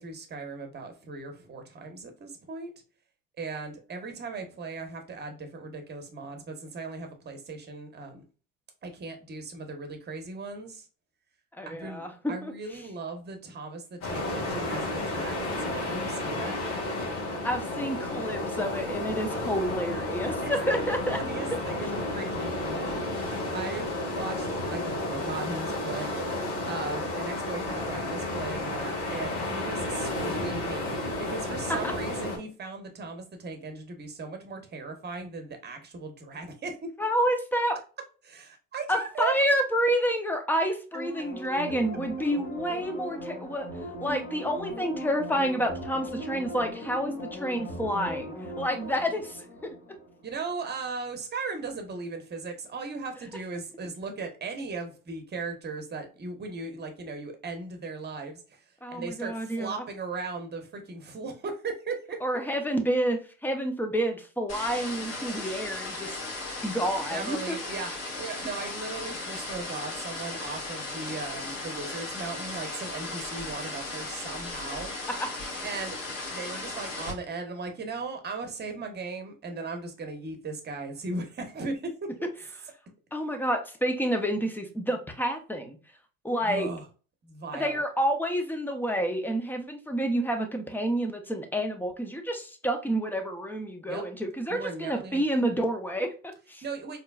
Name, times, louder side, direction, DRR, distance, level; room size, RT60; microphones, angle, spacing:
voice 1, 0.0-2.7 3.4-8.2 8.8-10.8 11.7-12.0 12.3-16.6 20.3-20.8 21.1-36.8 38.2-39.3 50.2-62.2 67.1-67.9 68.1-74.9 75.6-82.1 86.4-86.8 87.2-87.8 93.9-94.1 94.5-95.2 96.6-97.0, right 3 dB, 25° right, 1.1 m, -37 dB
voice 2, 11.5-12.5 17.4-21.2 31.7-31.9 37.0-37.8 38.9-43.7 44.0-49.7 58.8-59.8 62.2-66.2 66.6-67.5 75.5-75.6 83.1-85.8 86.2-86.7 87.5-96.6, equal, 5° left, 0.8 m, -29 dB
sound 1, 14.0-32.4, left 2 dB, 55° left, 1.8 m, -32 dB
sound 2, 40.9-50.3 50.7-50.8, equal, 20° left, 1.6 m, -39 dB
sound 3, 64.5-77.1, left 2 dB, 40° left, 1.9 m, -36 dB
4.4 x 3.2 x 2.3 m
hypercardioid pair, 85°, 38 cm